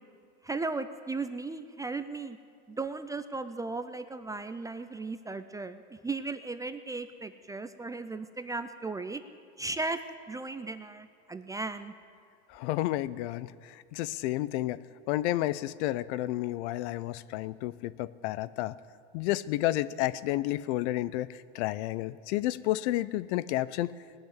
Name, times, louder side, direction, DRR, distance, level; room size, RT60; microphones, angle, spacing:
voice 1, 0.4-2.4 2.7-9.2 9.6-10.0 10.3-11.9, right 3 dB, 10° right, 10 dB, 0.3 m, -36 dB
voice 2, 12.5-14.8 15.1-18.7 19.1-23.9, left 15 dB, 75° left, 18 dB, 0.6 m, -31 dB
19.0 x 6.9 x 9.7 m, 2.2 s
supercardioid pair, 125°, 35 cm